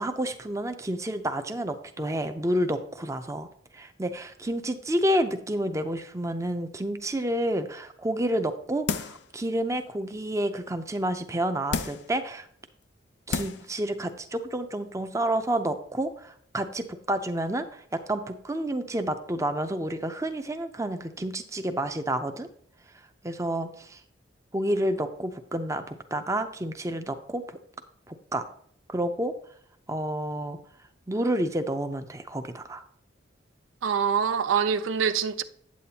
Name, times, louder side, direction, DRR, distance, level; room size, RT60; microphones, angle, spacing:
voice 1, 0.0-3.5 3.7-12.5 13.3-17.8 18.1-22.5 23.2-24.0 24.5-27.6 28.1-28.5 28.9-29.3 29.9-30.6 31.1-32.8, right 1 dB, 15° right, 0.5 m, -29 dB
sound 1, 8.9-9.3 9.8-9.9 11.7-12.2 12.9-13.0 13.3-13.7 14.1-14.2, left 5 dB, 60° left, 0.5 m, -31 dB
voice 2, 33.8-35.4, right 7 dB, 90° right, 0.4 m, -25 dB
8.6 x 8.5 x 2.8 m
head